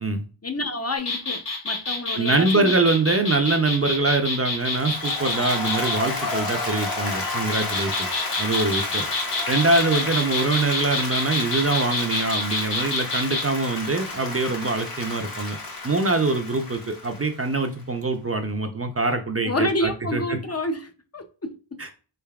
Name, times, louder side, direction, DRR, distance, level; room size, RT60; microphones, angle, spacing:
voice 1, 0.4-2.7 19.4-21.8, left 1 dB, 35° left, 0.6 m, -28 dB
sound 1, 1.0-6.0 7.3-13.4, left 3 dB, 70° left, 1.3 m, -28 dB
voice 2, 2.1-8.1 8.4-9.0 9.5-15.6 15.8-20.4 21.8-21.9, right 3 dB, 35° right, 0.5 m, -24 dB
Applause, 4.6-17.8, left 3 dB, 50° left, 1.0 m, -31 dB
3.8 x 3.4 x 2.3 m
wide cardioid pair, 50°, 44 cm